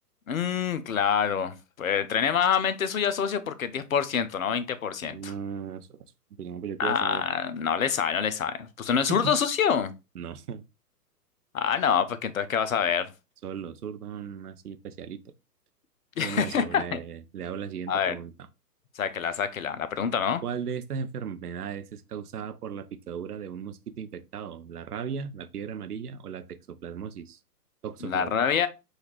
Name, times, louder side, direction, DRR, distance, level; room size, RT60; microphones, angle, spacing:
voice 1, 0.3-5.3 6.8-9.9 11.5-13.1 16.2-17.0 17.9-18.2 19.0-20.4 28.0-28.7, left 7 dB, 60° left, 0.7 m, -26 dB
voice 2, 5.0-6.0 6.4-7.2 9.1-9.4 10.1-10.6 13.4-15.2 16.2-18.3 20.4-27.4 27.8-28.3, right 7 dB, 70° right, 0.7 m, -36 dB
6.4 x 2.5 x 3.0 m
figure-of-eight pair, 125°, 48 cm